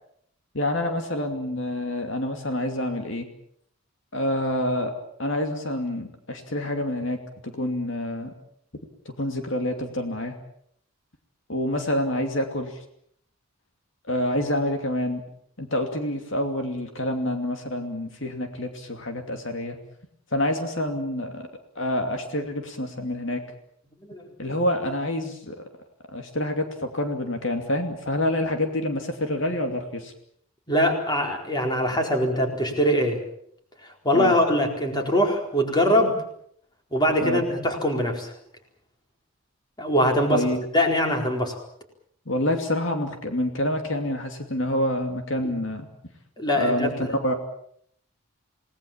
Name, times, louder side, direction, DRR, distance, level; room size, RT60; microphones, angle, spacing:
voice 1, 0.5-3.3 4.1-4.9 5.2-7.2 7.4-8.3 9.0-10.4 11.5-12.8 14.1-15.2 15.6-19.8 20.3-21.5 21.8-23.4 24.4-25.5 26.1-30.1 34.1-34.3 37.2-37.4 40.3-40.6 42.3-45.9 46.5-47.3, left 1 dB, 60° left, 5 dB, 2.7 m, -27 dB
voice 2, 30.7-33.2 33.8-36.2 36.9-38.3 39.8-40.4 40.7-41.6 45.4-45.5 46.4-47.2, equal, 20° left, 2 dB, 4.3 m, -23 dB
28.5 x 19.0 x 7.4 m, 0.67 s
head